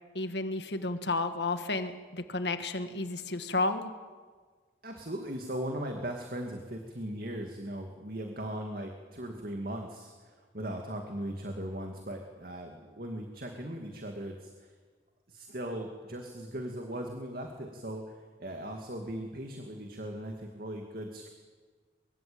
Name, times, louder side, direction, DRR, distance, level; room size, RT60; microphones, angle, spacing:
voice 1, 0.1-3.9, left 2 dB, 65° left, 8 dB, 1.8 m, -32 dB
voice 2, 4.8-14.7 15.3-18.1 18.4-21.3, right 1 dB, 50° right, 3 dB, 2.4 m, -38 dB
23.5 x 23.0 x 8.8 m, 1.5 s
head